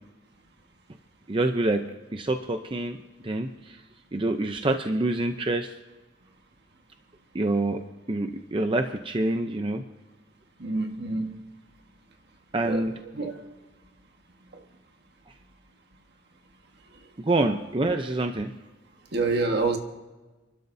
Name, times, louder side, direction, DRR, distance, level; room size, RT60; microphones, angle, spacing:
voice 1, 1.3-1.8 2.1-3.0 3.2-3.8 4.1-5.7 7.3-7.8 8.1-9.8 12.5-12.9 17.2-18.5, right 2 dB, 25° right, 0.6 m, -26 dB
voice 2, 10.6-11.3 12.6-13.5 14.5-14.6 19.1-19.8, right 3 dB, 60° right, 1.5 m, -28 dB
29.5 x 12.0 x 2.7 m
head